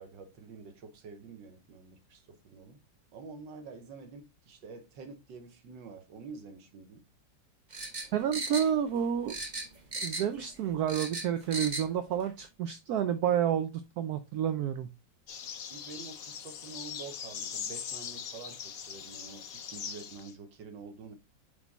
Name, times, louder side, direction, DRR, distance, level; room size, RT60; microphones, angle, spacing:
voice 1, 0.0-2.8 3.1-7.0 15.7-21.2, right 4 dB, 85° right, 1.7 m, -47 dB
sound 1, 7.7-9.0 9.3-10.4 10.7-11.9 12.2-12.3, right 2 dB, 35° right, 0.8 m, -36 dB
voice 2, 8.1-9.3 10.0-14.9, right 9 dB, 70° right, 1.0 m, -30 dB
sound 2, 15.3-20.3, left 7 dB, 60° left, 1.2 m, -41 dB
5.1 x 4.9 x 4.0 m
omnidirectional pair, 1.9 m